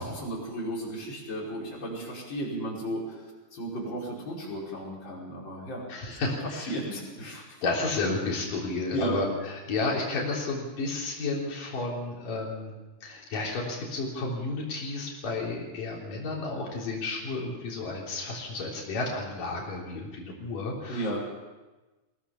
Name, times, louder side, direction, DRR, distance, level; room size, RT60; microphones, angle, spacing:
voice 1, 0.0-3.2 3.5-6.2 6.6-7.6 8.9-9.1 20.9-21.2, right 1 dB, 35° left, -4 dB, 5.9 m, -34 dB
voice 2, 5.9-6.8 7.6-12.7 13.0-21.1, left 3 dB, 90° left, -2 dB, 5.2 m, -32 dB
22.0 x 16.5 x 7.1 m, 1.2 s
omnidirectional pair, 3.7 m